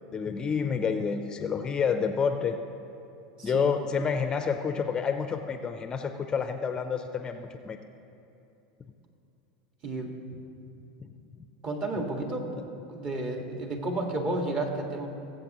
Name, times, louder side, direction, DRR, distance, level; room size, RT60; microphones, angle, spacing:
voice 1, 0.0-2.6 3.4-7.8 11.0-11.1 11.4-11.5, left 6 dB, 25° left, 7 dB, 0.6 m, -29 dB
voice 2, 3.4-3.7 9.8-10.1 11.6-12.5 12.9-15.1, right 2 dB, 35° right, 2 dB, 1.7 m, -31 dB
20.5 x 7.8 x 3.0 m, 2.8 s
hypercardioid pair, 105°, 3 cm